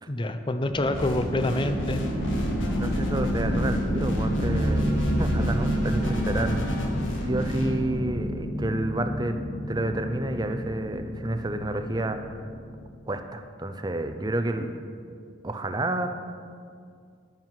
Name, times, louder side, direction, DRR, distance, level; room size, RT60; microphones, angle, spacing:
voice 1, 0.1-2.1, left 1 dB, 25° left, 9 dB, 0.6 m, -27 dB
sound 1, 0.7-12.9, equal, 50° left, 2.9 m, -29 dB
sound 2, 0.9-7.7, equal, 80° left, 1.7 m, -32 dB
voice 2, 2.7-6.9 7.2-9.3 9.7-12.4 13.1-14.8 15.4-16.1, right 1 dB, 20° right, 7 dB, 0.5 m, -30 dB
9.6 x 9.2 x 5.8 m, 2.2 s
head